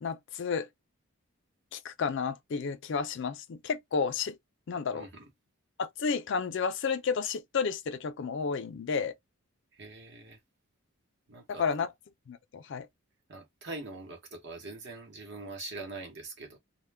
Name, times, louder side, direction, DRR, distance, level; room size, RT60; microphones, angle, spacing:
voice 1, 0.0-0.7 1.7-4.3 4.7-5.1 5.8-9.1 11.5-11.9 12.3-12.9, left 5 dB, 55° left, 0.4 m, -31 dB
voice 2, 4.9-5.3 9.7-10.4 11.3-11.7 13.3-16.6, right 2 dB, 55° right, 0.9 m, -43 dB
2.2 x 2.1 x 3.3 m
head